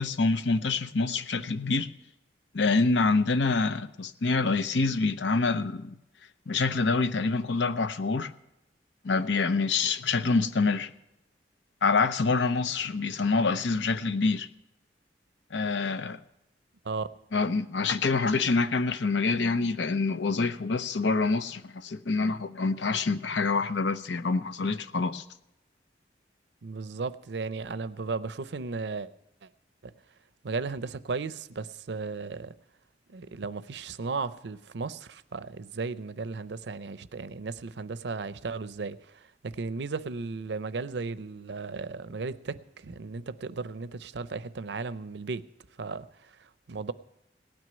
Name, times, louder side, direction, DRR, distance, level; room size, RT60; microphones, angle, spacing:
voice 1, 0.0-1.9 2.5-5.9 6.5-8.3 9.0-10.9 11.8-14.5 15.5-16.2 17.3-25.2, left 4 dB, 80° left, 0.7 m, -26 dB
voice 2, 26.6-29.1 29.4-29.5 30.4-32.5 33.1-45.5 45.8-46.9, right 4 dB, 70° right, 0.6 m, -35 dB
18.0 x 6.2 x 9.6 m
head